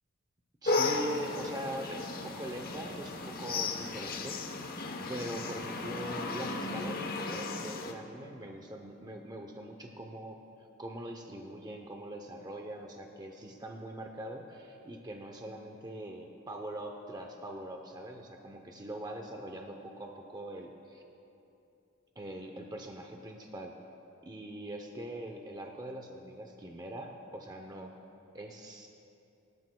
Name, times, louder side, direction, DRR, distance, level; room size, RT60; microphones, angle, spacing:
voice 1, 0.6-4.4 5.1-10.4 10.8-21.0 22.2-23.7 24.2-27.9 28.3-28.9, right 1 dB, 20° right, 3 dB, 0.7 m, -42 dB
sound 1, 0.7-7.9, left 3 dB, 45° left, 0.9 m, -35 dB
24.5 x 12.5 x 2.3 m, 2.8 s
head